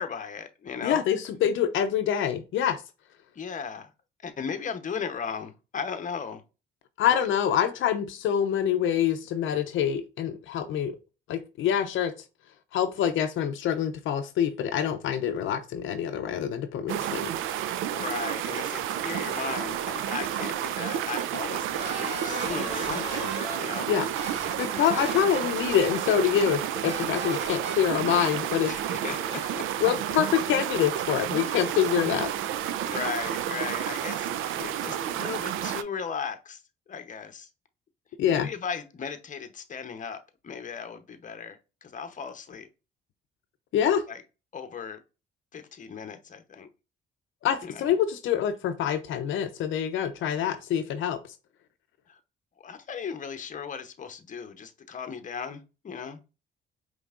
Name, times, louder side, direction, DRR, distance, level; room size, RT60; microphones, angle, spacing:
voice 1, 0.0-1.0 3.4-3.9 4.2-6.4 7.1-7.3 17.9-23.9 24.7-25.1 28.6-29.6 31.5-31.8 32.8-36.6 36.9-37.5 38.2-42.7 44.1-44.2 44.5-45.0 45.5-46.7 47.6-47.9 52.1-52.2 52.6-56.2, left 6 dB, 40° left, 0.8 m, -37 dB
voice 2, 0.8-2.8 7.0-11.0 11.3-12.1 12.7-17.3 23.1-23.2 23.9-24.1 24.6-28.7 29.8-32.3 38.2-38.5 43.7-44.0 47.4-51.2, left 9 dB, 75° left, 0.6 m, -26 dB
sound 1, 16.9-35.8, right 11 dB, 85° right, 0.4 m, -31 dB
sound 2, 21.8-23.8 24.1-26.1 26.4-26.5 26.8-27.7, right 2 dB, 35° right, 2.0 m, -36 dB
5.2 x 3.3 x 2.4 m
cardioid pair, 90°, 20 cm